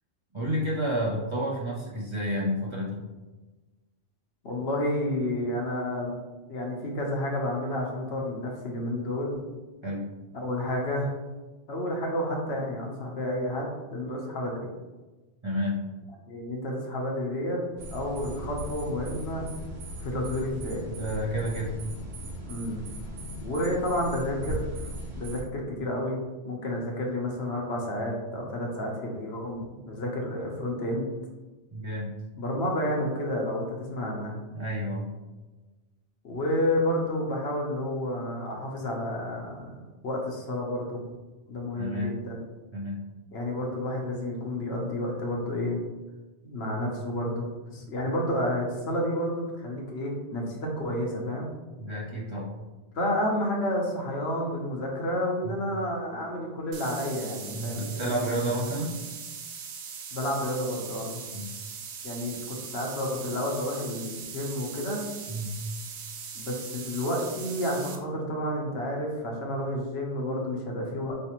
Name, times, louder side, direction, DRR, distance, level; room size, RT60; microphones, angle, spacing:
voice 1, 0.3-3.0 9.8-10.1 15.4-15.8 20.9-21.7 31.7-32.1 34.5-35.1 41.8-42.1 42.7-43.0 46.7-46.8 51.8-52.5 55.4-55.6 57.5-59.0 61.3-61.5 65.3-65.6, equal, 30° right, -6 dB, 0.7 m, -30 dB
voice 2, 4.4-6.1 6.5-9.4 10.3-11.1 11.7-14.7 16.3-17.6 17.9-19.5 20.0-20.8 22.5-22.8 23.4-24.9 25.2-26.2 26.4-31.1 32.4-34.4 36.2-41.0 41.5-42.4 43.3-45.8 46.4-51.5 52.9-58.5 60.1-61.2 62.0-65.0 66.3-71.1, left 1 dB, 65° left, -1 dB, 1.1 m, -30 dB
sound 1, 17.8-25.4, equal, 65° right, 1.2 m, -38 dB
sound 2, 56.7-68.0, right 6 dB, 80° right, 0.9 m, -40 dB
4.5 x 3.2 x 2.9 m, 1.2 s
omnidirectional pair, 1.2 m